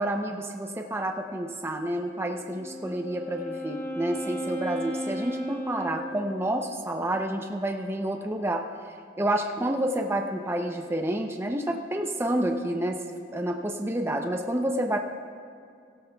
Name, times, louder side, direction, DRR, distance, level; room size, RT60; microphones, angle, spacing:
voice 1, 0.0-8.6 9.2-13.0 13.3-15.0, right 1 dB, 15° right, 3 dB, 0.6 m, -29 dB
Wind instrument woodwind instrument, 2.4-6.8, equal, 10° left, 0.9 m, -35 dB
17.5 x 16.0 x 2.3 m, 2.3 s
head